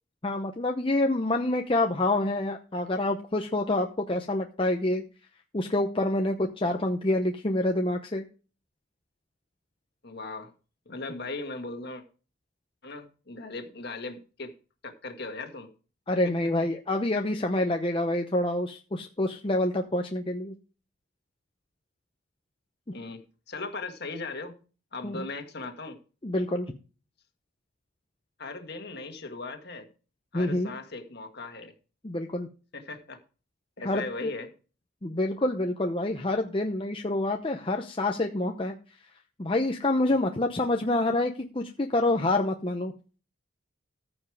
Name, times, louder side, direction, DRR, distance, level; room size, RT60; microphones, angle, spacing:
voice 1, 0.2-5.0 5.5-8.2 16.1-20.5 25.0-25.3 26.2-26.7 30.3-30.7 32.0-32.5 33.8-34.3 35.0-38.7 39.4-42.9, left 2 dB, 25° left, 0.7 m, -27 dB
voice 2, 10.0-10.5 10.9-12.0 12.8-14.5 14.8-15.7 22.9-24.6 24.9-26.0 28.4-29.9 30.3-31.7 32.7-33.2 33.8-34.5 40.1-40.2, left 3 dB, 50° left, 1.7 m, -38 dB
14.5 x 5.3 x 4.8 m
head